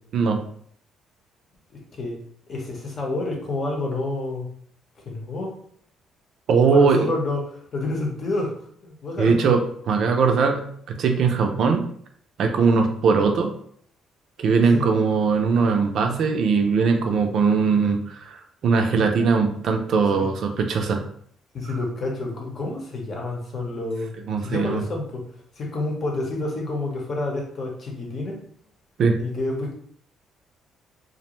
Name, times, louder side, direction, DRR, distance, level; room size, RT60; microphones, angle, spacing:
voice 1, 1.7-2.2 2.5-4.5 5.1-5.6 6.7-8.6 8.8-9.4 14.7-14.9 20.1-20.3 21.5-24.1 24.4-25.3 25.5-28.4 29.2-29.7, left 2 dB, 45° left, -1 dB, 0.8 m, -29 dB
voice 2, 6.5-7.1 9.2-11.9 12.4-13.5 14.4-18.4 18.6-21.0 24.3-24.8 29.0-29.2, right 5 dB, 65° right, 5 dB, 0.4 m, -20 dB
2.5 x 2.1 x 3.0 m, 0.62 s
cardioid pair, 95°, 0 cm